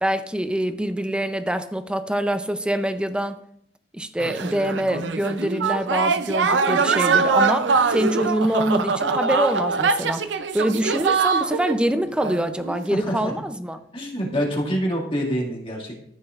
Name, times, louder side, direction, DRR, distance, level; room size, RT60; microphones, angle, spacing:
voice 1, 0.0-3.4 3.9-13.8, right 1 dB, 5° right, 9 dB, 0.5 m, -25 dB
sound 1, 4.2-11.8 12.2-12.8, right 5 dB, 85° right, 0.5 m, -23 dB
voice 2, 12.9-13.3 13.9-16.0, equal, 30° left, -1 dB, 2.1 m, -26 dB
14.0 x 6.4 x 2.5 m, 0.69 s
head